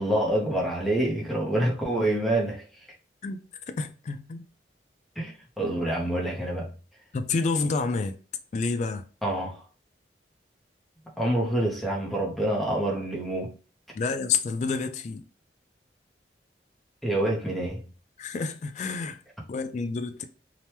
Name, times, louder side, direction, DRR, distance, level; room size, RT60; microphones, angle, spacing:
voice 1, 0.0-2.9 5.2-6.7 9.2-9.6 11.2-13.6 17.0-17.9, right 1 dB, ahead, 0.7 m, -27 dB
voice 2, 3.7-4.5 7.1-8.2 8.5-9.0 13.9-15.3 18.2-19.2 19.5-20.2, left 4 dB, 40° left, 0.3 m, -29 dB
2.9 x 2.1 x 3.2 m
head